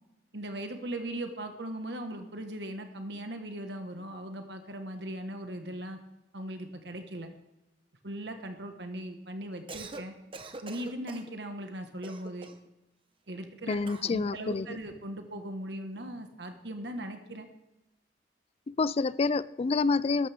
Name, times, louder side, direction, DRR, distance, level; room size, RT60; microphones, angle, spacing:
voice 1, 0.3-6.0 6.3-7.3 8.0-10.2 10.6-12.5 13.3-13.8 14.1-17.5, right 1 dB, 70° right, 6 dB, 1.4 m, -39 dB
Cough, 9.5-10.1 10.3-11.3 12.0-12.7 13.8-14.2, right 3 dB, 30° right, 0.9 m, -44 dB
voice 2, 13.7-14.7 18.7-20.3, left 4 dB, 35° left, 18 dB, 0.4 m, -28 dB
13.5 x 12.5 x 3.5 m, 0.98 s
head